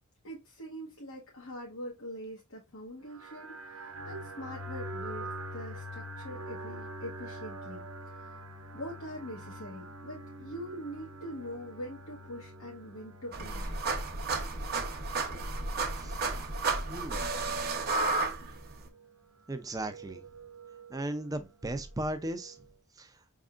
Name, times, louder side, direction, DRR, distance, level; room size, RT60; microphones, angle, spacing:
voice 1, 0.2-8.4 8.7-13.7, equal, 75° left, 1.2 m, -43 dB
sound 1, 3.1-22.8, right 1 dB, 85° right, 0.9 m, -46 dB
sound 2, 13.3-18.8, right 3 dB, 45° right, 1.0 m, -32 dB
voice 2, 16.0-16.3 16.9-17.3 19.5-20.2 20.9-22.6 23.0-23.2, right 1 dB, 15° right, 0.5 m, -36 dB
5.3 x 3.6 x 2.5 m
head